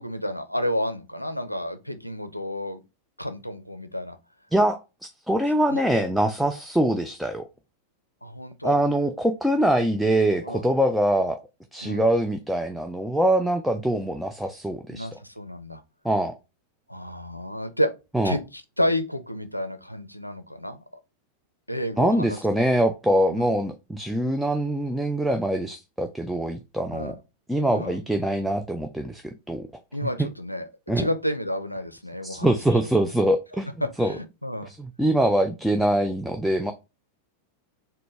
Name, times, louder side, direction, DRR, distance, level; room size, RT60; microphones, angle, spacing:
voice 1, 0.0-2.8 3.2-4.2 5.7-5.8 8.2-8.8 10.4-10.6 11.8-12.0 14.9-15.8 16.9-17.9 18.2-20.8 21.7-22.4 23.3-23.5 26.9-27.2 27.7-28.0 29.9-30.7 31.0-32.5 33.8-34.7, equal, 90° left, 0.4 m, -30 dB
voice 2, 5.3-7.5 8.6-11.4 11.7-15.1 16.0-16.3 18.1-18.4 22.0-27.2 27.5-29.7 30.9-31.1 32.3-33.7 34.0-34.1 34.7-36.7, right 1 dB, ahead, 0.3 m, -23 dB
3.9 x 2.1 x 3.1 m
figure-of-eight pair, 90°, 0 cm